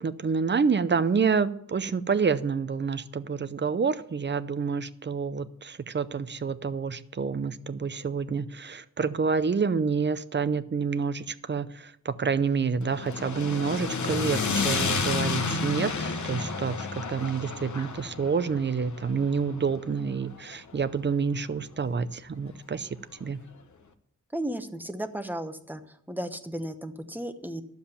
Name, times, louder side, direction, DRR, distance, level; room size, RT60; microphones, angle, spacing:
voice 1, 0.0-22.9 23.2-23.4, right 5 dB, 35° right, 15 dB, 0.6 m, -28 dB
sound 1, 12.8-21.1, left 4 dB, 65° left, 1.1 m, -31 dB
voice 2, 24.3-25.8 26.1-27.6, right 1 dB, 5° right, 9 dB, 0.9 m, -34 dB
12.0 x 7.3 x 7.0 m, 0.73 s
wide cardioid pair, 140°, 31 cm